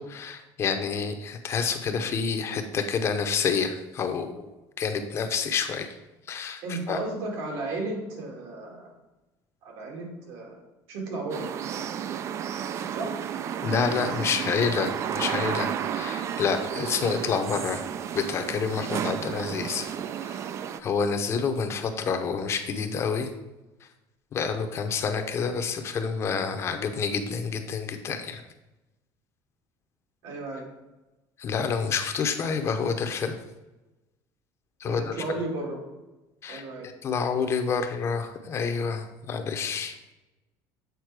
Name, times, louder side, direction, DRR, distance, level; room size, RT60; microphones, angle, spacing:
voice 1, 0.0-4.5 4.8-5.9 6.3-7.0 13.6-17.8 18.1-19.9 20.2-20.4 20.8-23.3 24.3-28.4 31.4-33.4 34.8-35.1 36.4-39.9, left 5 dB, 35° left, 7 dB, 0.7 m, -28 dB
voice 2, 6.6-8.9 9.6-10.6 10.9-11.5 12.9-13.1 30.2-30.7 34.8-35.8 36.5-36.9, right 2 dB, 75° right, -1 dB, 2.3 m, -34 dB
sound 1, 11.3-20.8, right 9 dB, 35° right, 0.3 m, -32 dB
8.2 x 4.1 x 4.7 m, 1.1 s
cardioid pair, 145°, 8 cm